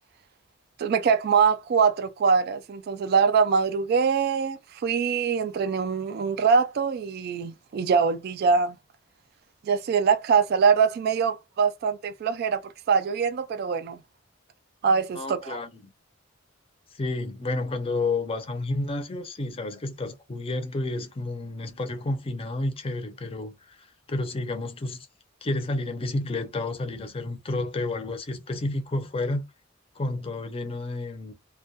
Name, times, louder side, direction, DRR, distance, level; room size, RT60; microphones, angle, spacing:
voice 1, 0.8-8.8 9.6-12.6 12.9-14.0 14.8-15.6, right 6 dB, 55° right, 0.3 m, -23 dB
voice 2, 15.1-15.9 16.9-23.7 24.1-25.1 25.4-29.4 30.0-31.3, left 2 dB, 30° left, 0.5 m, -30 dB
2.2 x 2.2 x 2.7 m
head